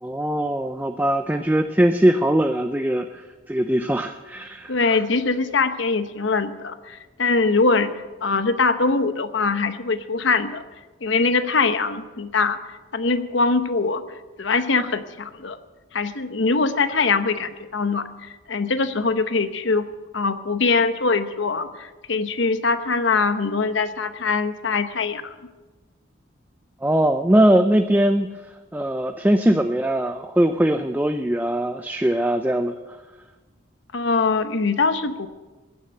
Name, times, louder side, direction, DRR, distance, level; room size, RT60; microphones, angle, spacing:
voice 1, 0.0-5.0 26.8-28.3 28.7-32.7, right 1 dB, 10° right, 7 dB, 0.4 m, -21 dB
voice 2, 4.7-7.9 8.2-10.6 11.0-12.6 12.9-14.0 14.4-15.6 15.9-18.0 18.5-19.9 20.1-25.3 33.9-35.3, left 4 dB, 70° left, 11 dB, 0.9 m, -22 dB
15.5 x 9.7 x 7.9 m, 1.3 s
head